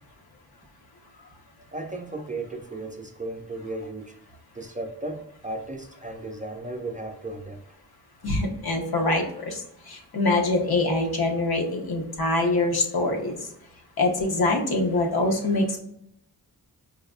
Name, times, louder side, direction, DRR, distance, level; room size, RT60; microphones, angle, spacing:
voice 1, 1.7-4.1 4.5-7.6, right 2 dB, 20° right, 4 dB, 0.4 m, -35 dB
voice 2, 8.2-9.5 10.1-13.4 14.0-15.8, left 2 dB, 75° left, 1 dB, 1.0 m, -24 dB
4.8 x 2.2 x 2.4 m, 0.75 s
wide cardioid pair, 85°, 37 cm